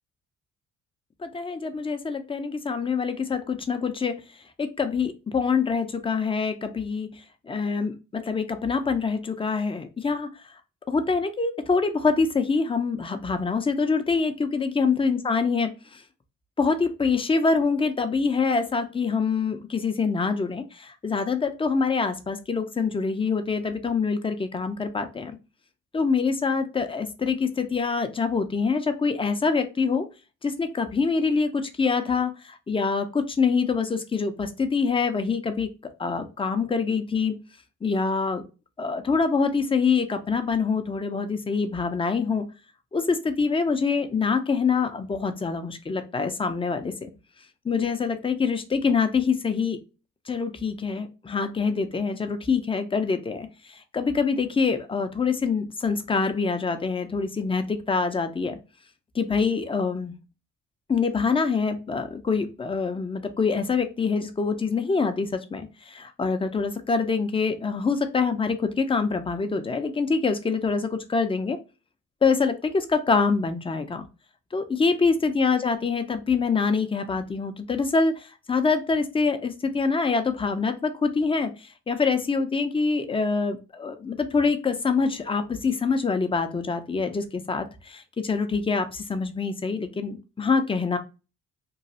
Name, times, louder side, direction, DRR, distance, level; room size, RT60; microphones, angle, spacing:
voice 1, 1.2-4.1 4.6-7.1 7.5-10.3 10.9-16.0 16.6-25.3 25.9-30.1 30.4-35.7 36.0-37.3 37.8-38.4 38.8-42.4 42.9-47.1 47.6-49.8 50.3-58.6 59.1-60.1 60.9-71.6 72.2-74.1 74.5-91.0, left 4 dB, 20° left, 7 dB, 0.5 m, -25 dB
3.1 x 2.3 x 2.7 m, 0.30 s
cardioid pair, 90°, 30 cm